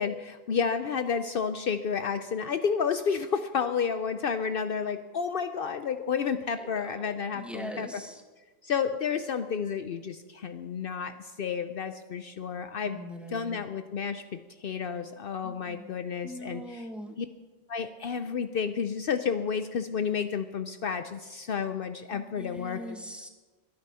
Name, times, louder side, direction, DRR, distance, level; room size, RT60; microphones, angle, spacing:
voice 1, 0.0-7.9 8.6-13.0 13.3-16.9 17.2-17.3 17.7-23.0, left 6 dB, 65° left, 9 dB, 0.8 m, -31 dB
voice 2, 6.6-8.2 12.8-13.6 15.4-15.9 16.2-17.1 22.1-23.3, equal, ahead, 3 dB, 1.7 m, -42 dB
22.5 x 9.7 x 5.6 m, 1.3 s
omnidirectional pair, 1.1 m